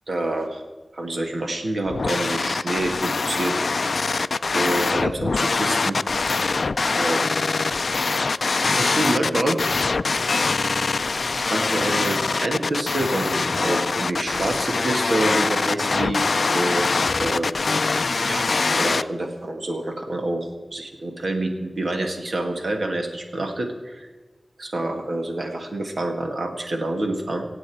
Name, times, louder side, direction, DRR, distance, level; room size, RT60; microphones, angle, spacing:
voice 1, 0.1-0.6 0.9-3.9 4.5-6.0 6.9-7.3 8.6-9.6 11.3-16.9 17.2-17.6 18.2-24.1 24.6-27.5, right 1 dB, 85° right, 3 dB, 1.9 m, -27 dB
sound 1, 1.9-19.0, left 4 dB, 85° left, 0.3 m, -23 dB
24.5 x 8.2 x 4.9 m, 1.3 s
wide cardioid pair, 80°, 0 cm